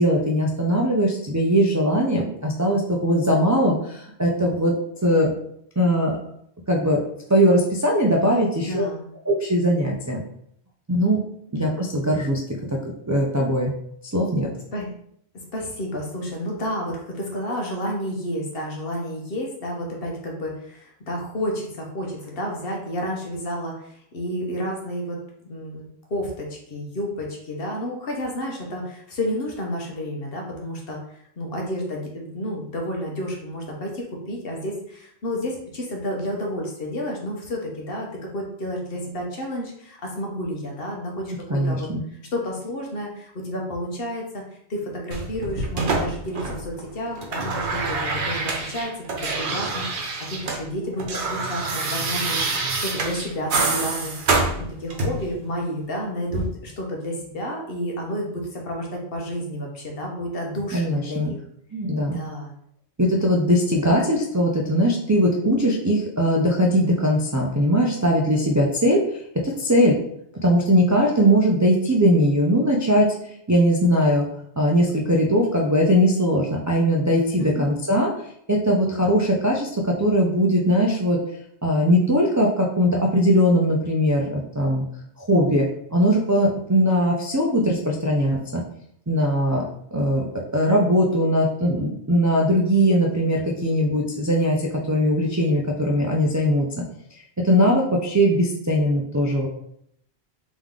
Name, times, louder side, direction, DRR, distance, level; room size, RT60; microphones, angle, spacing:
voice 1, 0.0-4.7 5.0-5.3 5.8-6.1 6.7-7.0 7.3-8.8 9.3-10.2 10.9-11.2 11.5-12.4 12.7-12.8 13.1-13.7 14.1-14.5 41.5-42.0 60.7-61.3 61.7-62.2 63.0-70.0 70.4-73.1 73.5-74.3 74.6-78.1 78.5-81.2 81.6-84.8 85.2-88.6 89.1-89.6 89.9-90.2 90.5-96.7 97.4-99.5, equal, 30° right, -3 dB, 0.3 m, -20 dB
voice 2, 8.7-9.1 14.7-14.9 15.5-25.2 25.5-31.0 31.4-38.1 38.3-41.9 42.3-44.4 44.7-54.2 54.8-61.4 62.1-62.5 77.4-77.7, equal, 60° left, 0 dB, 1.1 m, -30 dB
sound 1, 45.1-46.8 47.1-50.6 50.9-55.3 56.3-56.5, right 3 dB, 80° right, 1.1 m, -26 dB
3.6 x 3.1 x 3.6 m, 0.70 s
omnidirectional pair, 1.1 m